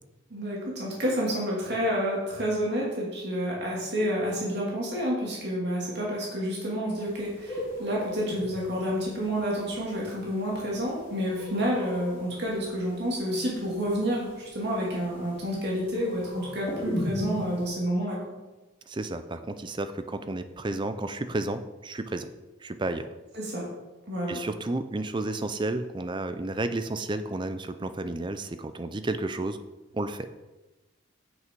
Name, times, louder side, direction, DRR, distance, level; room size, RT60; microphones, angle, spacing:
voice 1, 0.3-18.2 23.3-23.6 24.1-24.4, equal, 50° right, -4 dB, 2.5 m, -29 dB
sound 1, 6.9-17.6, equal, 10° left, 2.5 m, -38 dB
voice 2, 18.9-22.3 22.6-23.1 24.3-29.6 29.9-30.3, right 2 dB, 20° right, 10 dB, 0.4 m, -32 dB
8.2 x 6.3 x 4.6 m, 1.1 s
head